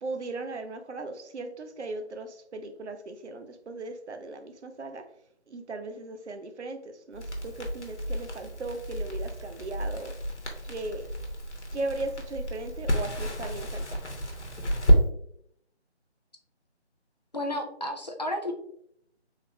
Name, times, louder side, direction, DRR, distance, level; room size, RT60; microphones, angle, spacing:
voice 1, 0.0-5.1 5.5-10.1 10.7-11.1 11.7-14.0, right 2 dB, 80° right, 8 dB, 0.6 m, -37 dB
Crackle, 7.1-15.0, equal, 85° left, 1.0 m, -29 dB
voice 2, 17.3-18.5, left 1 dB, 40° left, 4 dB, 0.4 m, -32 dB
3.6 x 3.2 x 2.2 m, 0.71 s
figure-of-eight pair, 165°, 34 cm